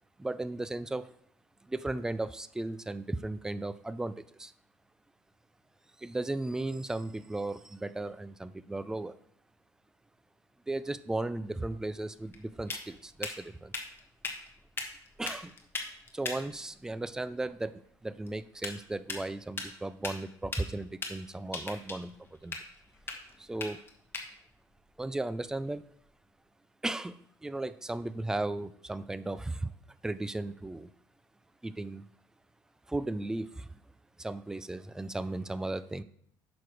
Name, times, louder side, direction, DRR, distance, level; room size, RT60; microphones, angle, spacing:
voice 1, 0.2-1.1 1.6-4.5 6.0-9.1 10.7-13.7 15.2-15.5 16.1-22.6 23.4-23.8 25.0-25.8 26.8-29.7 30.0-30.9 31.6-32.0 32.9-33.7 34.2-36.0, right 2 dB, 5° right, 14 dB, 0.3 m, -36 dB
sound 1, 11.4-26.1, left 3 dB, 25° left, 1.2 m, -43 dB
6.7 x 6.0 x 4.8 m, 0.67 s
cardioid pair, 120°, 10 cm